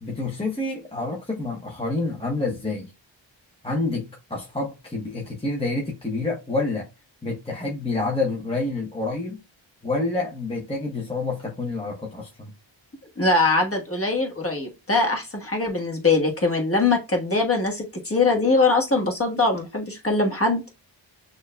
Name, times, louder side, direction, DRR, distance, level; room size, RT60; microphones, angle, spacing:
voice 1, 0.0-2.9 3.6-6.8 7.2-9.4 9.8-12.5, left 2 dB, 10° left, 0.8 m, -28 dB
voice 2, 13.2-20.6, left 3 dB, 30° left, 1.3 m, -22 dB
6.2 x 2.5 x 2.2 m
wide cardioid pair, 70°, 47 cm